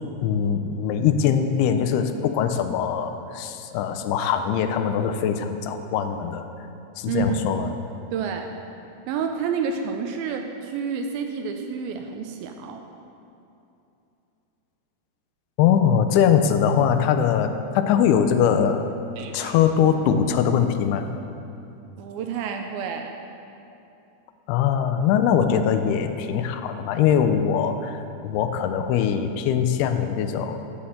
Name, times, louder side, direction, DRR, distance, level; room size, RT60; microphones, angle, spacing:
voice 1, 0.2-6.5 7.0-7.7 15.6-18.9 19.3-21.1 24.5-30.6, left 8 dB, 85° left, 7 dB, 2.6 m, -22 dB
voice 2, 7.1-7.6 8.1-8.6 9.1-12.9 19.2-19.6 22.0-23.1, right 6 dB, 80° right, 5 dB, 2.3 m, -29 dB
11.5 x 4.2 x 7.6 m, 2.8 s
omnidirectional pair, 4.5 m